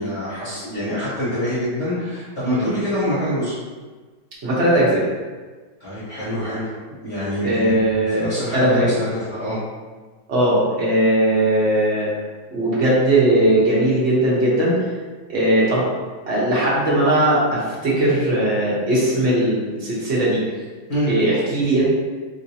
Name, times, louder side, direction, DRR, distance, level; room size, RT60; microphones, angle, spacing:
voice 1, 0.0-3.5 5.8-6.7 7.0-7.7 8.2-9.6 20.9-21.1, equal, 40° left, -12 dB, 1.2 m, -25 dB
voice 2, 4.4-5.0 7.4-8.9 10.3-12.1 12.5-14.9 15.3-15.9 16.3-20.4 21.0-21.8, right 1 dB, 45° right, -8 dB, 1.0 m, -19 dB
3.1 x 2.8 x 2.7 m, 1.4 s
omnidirectional pair, 2.0 m